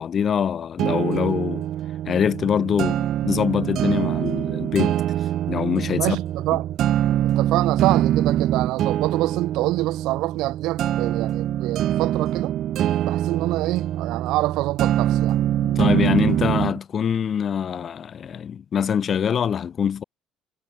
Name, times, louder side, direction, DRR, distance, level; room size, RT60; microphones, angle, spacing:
voice 1, 0.0-1.7 2.1-5.0 5.5-6.2 15.6-20.0, left 8 dB, 35° left, 1.9 m, -24 dB
sound 1, 0.8-16.8, right 12 dB, 50° right, 3.4 m, -24 dB
voice 2, 5.9-6.7 7.2-12.5 13.1-15.4, right 18 dB, 70° right, 2.2 m, -26 dB
cardioid pair, 155°, 0 cm